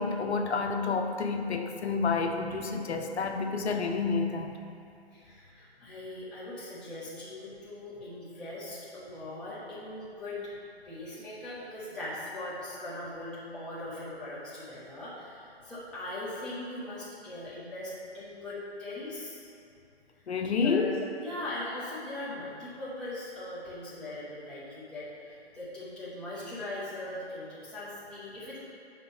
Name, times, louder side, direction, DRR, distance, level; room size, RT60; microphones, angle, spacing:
voice 1, 0.0-4.6 20.3-21.0, left 4 dB, 80° left, 5 dB, 0.7 m, -29 dB
voice 2, 5.1-10.4 10.8-19.4 20.6-28.6, left 1 dB, 5° left, -11 dB, 0.6 m, -40 dB
6.1 x 4.4 x 5.1 m, 2.5 s
hypercardioid pair, 150°, 33 cm